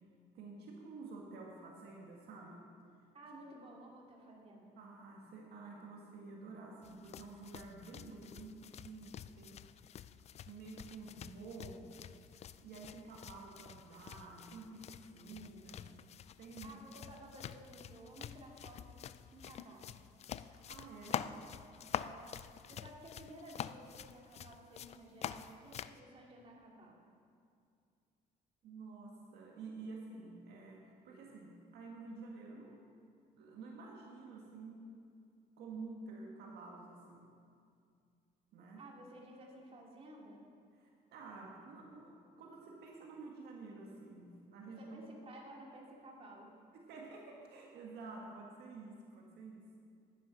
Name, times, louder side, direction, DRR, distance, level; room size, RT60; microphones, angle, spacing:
voice 1, 0.3-2.7 4.8-9.6 10.5-11.9 12.6-14.9 15.1-15.8 16.4-16.8 20.4-21.5 28.6-32.8 33.4-34.9 35.6-37.3 38.5-38.8 40.8-45.0 46.7-49.6, right 3 dB, 75° right, -1 dB, 1.7 m, -50 dB
voice 2, 3.1-4.8 16.6-19.0 19.3-20.0 22.0-27.0 38.8-40.4 44.6-46.5, right 1 dB, 35° right, -1 dB, 2.4 m, -54 dB
sound 1, 6.8-26.0, left 9 dB, 40° left, 0.4 m, -47 dB
11.0 x 10.0 x 6.0 m, 2.4 s
cardioid pair, 110°, 17 cm